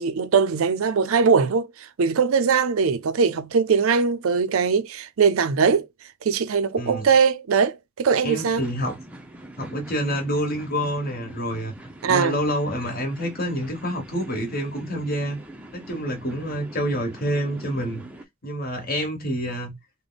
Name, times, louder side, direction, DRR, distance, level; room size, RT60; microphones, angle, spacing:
voice 1, 0.0-5.9 6.2-8.6 12.0-12.4, right 5 dB, 80° right, 0.5 m, -21 dB
voice 2, 8.2-9.0 9.6-11.7 12.1-15.4 15.7-18.0 18.4-19.7, equal, 45° left, 1.3 m, -27 dB
sound 1, 8.4-18.3, right 1 dB, 5° right, 0.5 m, -43 dB
3.3 x 2.1 x 3.9 m
head